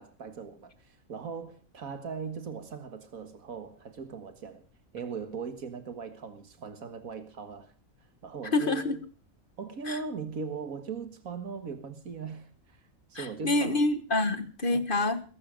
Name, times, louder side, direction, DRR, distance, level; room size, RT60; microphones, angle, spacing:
voice 1, 0.0-4.6 4.9-7.7 8.2-9.0 9.6-12.8 13.1-13.8 14.7-14.9, right 5 dB, 85° right, 2.1 m, -39 dB
voice 2, 8.5-9.0 9.9-10.0 13.2-15.2, left 2 dB, 40° left, 1.8 m, -27 dB
21.5 x 12.0 x 5.1 m
omnidirectional pair, 1.4 m